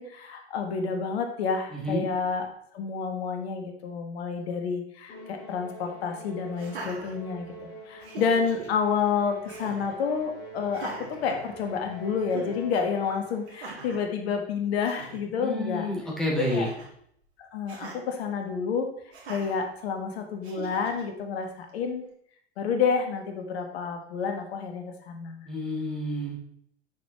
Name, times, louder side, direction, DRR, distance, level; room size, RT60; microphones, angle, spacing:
voice 1, 0.0-2.5 2.7-7.5 7.9-15.9 16.3-16.7 17.4-18.9 19.3-22.0 22.6-25.4, left 6 dB, 65° left, 5 dB, 1.4 m, -29 dB
voice 2, 1.7-2.0 15.4-16.7 25.5-26.4, left 1 dB, ahead, -5 dB, 2.8 m, -29 dB
Musical instrument, 5.1-13.6, equal, 30° left, 2.1 m, -45 dB
Laughter, 6.5-7.6 8.0-8.7 9.5-10.0 10.7-11.9 12.3-12.6 13.5-14.1 14.6-14.7 14.8-15.2 16.3-16.9 17.7-18.0 19.1-19.6 20.4-21.0, right 3 dB, 65° right, 2.0 m, -41 dB
7.2 x 6.3 x 3.0 m, 0.68 s
hypercardioid pair, 95°, 34 cm